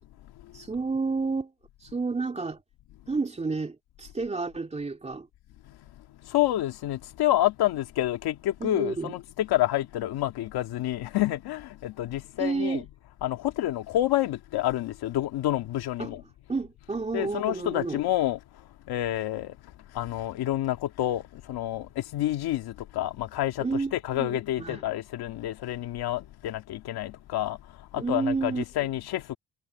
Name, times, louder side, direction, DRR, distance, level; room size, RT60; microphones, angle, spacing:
voice 1, 0.5-1.5 1.8-2.6 3.1-5.3 8.6-9.1 12.4-12.8 16.0-16.2 16.5-18.0 23.6-24.8 28.0-28.6, right 4 dB, 15° right, 2.7 m, -30 dB
voice 2, 6.3-12.9 13.2-16.2 17.1-18.4 18.9-19.5 19.9-21.2 21.5-27.6 27.9-29.4, left 14 dB, 80° left, 2.3 m, -28 dB
cardioid pair, 140°, 37 cm